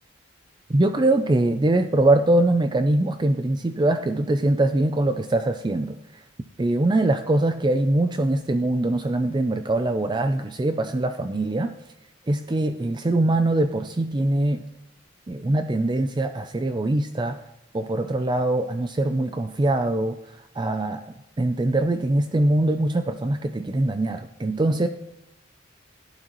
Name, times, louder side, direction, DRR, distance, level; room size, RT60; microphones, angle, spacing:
voice 1, 0.7-6.0 6.6-11.7 12.3-14.6 15.3-17.4 17.7-20.2 20.6-21.0 21.4-24.9, right 2 dB, 25° right, 8 dB, 0.4 m, -22 dB
16.0 x 11.5 x 3.0 m, 0.85 s
head